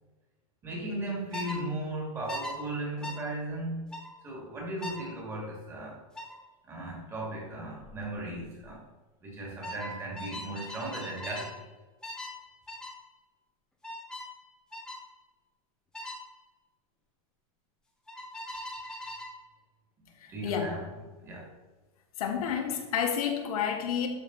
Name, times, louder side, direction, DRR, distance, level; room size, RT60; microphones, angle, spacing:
voice 1, 0.6-6.0 6.7-8.9 9.2-11.7 20.3-20.9 21.2-21.5, right 1 dB, 15° right, -2 dB, 2.4 m, -37 dB
sound 1, 1.3-1.6 2.3-2.5 3.0-3.2 3.9-4.1 4.8-5.1 6.2-6.4 7.8-8.1 8.4-8.7 9.6-11.6 12.0-12.4 12.7-13.0 13.8-14.3 14.7-15.0 15.9-16.2 18.1-19.4, left 1 dB, 5° left, 1.0 m, -40 dB
voice 2, 20.2-20.7 22.2-24.1, left 8 dB, 75° left, 3 dB, 1.7 m, -30 dB
12.0 x 5.5 x 4.0 m, 1.2 s
supercardioid pair, 175°, 19 cm